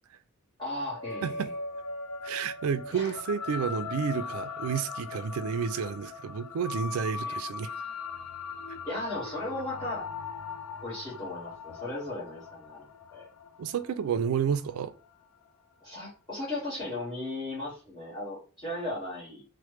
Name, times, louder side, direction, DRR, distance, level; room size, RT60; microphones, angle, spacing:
voice 1, 0.6-1.5 2.9-3.2 7.2-7.4 8.8-10.1 10.8-13.3 15.8-19.4, left 2 dB, 20° left, 1.2 m, -36 dB
sound 1, 0.8-15.5, left 4 dB, 80° left, 0.4 m, -40 dB
voice 2, 2.2-7.7 13.6-14.9, right 7 dB, 75° right, 0.3 m, -30 dB
3.1 x 2.1 x 3.2 m
head